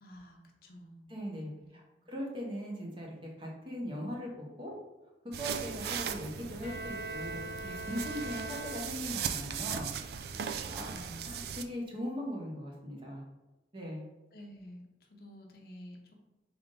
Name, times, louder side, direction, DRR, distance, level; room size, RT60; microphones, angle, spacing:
voice 1, 0.0-1.1 1.5-1.7 2.0-2.1 10.9-11.1 14.3-16.1, equal, 55° left, 1 dB, 0.7 m, -51 dB
voice 2, 1.1-1.8 2.1-4.7 5.4-9.9 10.7-13.2 13.7-14.0, equal, 30° right, -2 dB, 0.9 m, -40 dB
sound 1, 5.3-11.6, right 7 dB, 60° right, 0.3 m, -38 dB
Bowed string instrument, 6.6-9.3, right 2 dB, 45° right, 1.2 m, -41 dB
3.8 x 3.5 x 3.8 m, 1.1 s
head